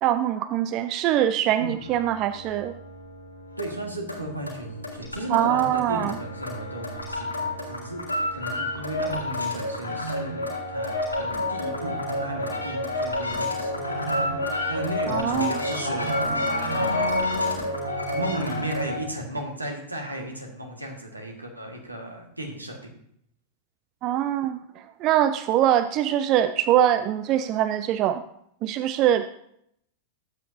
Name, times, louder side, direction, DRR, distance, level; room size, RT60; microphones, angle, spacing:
voice 1, 0.0-2.7 5.3-6.1 15.1-15.6 24.0-28.2 28.6-29.2, right 11 dB, 40° right, 12 dB, 0.4 m, -23 dB
voice 2, 1.6-1.9 3.6-14.0 14.7-17.2 18.1-23.0, right 1 dB, 85° right, 2 dB, 1.7 m, -35 dB
sound 1, 1.7-19.1, left 1 dB, 85° left, 3.3 m, -30 dB
13.0 x 8.4 x 2.7 m, 0.71 s
figure-of-eight pair, 90°, 0 cm